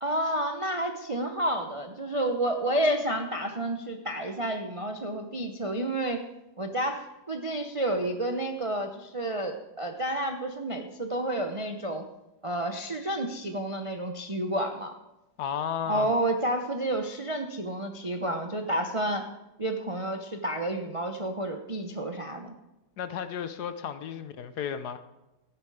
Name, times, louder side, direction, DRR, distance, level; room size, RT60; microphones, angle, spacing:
voice 1, 0.0-6.2 6.6-12.0 12.4-14.9 15.9-19.3 19.6-22.5, right 1 dB, 35° right, 4 dB, 0.5 m, -30 dB
voice 2, 15.4-16.1 23.0-25.0, left 8 dB, 65° left, 11 dB, 1.2 m, -33 dB
14.0 x 10.5 x 4.9 m, 0.97 s
omnidirectional pair, 2.0 m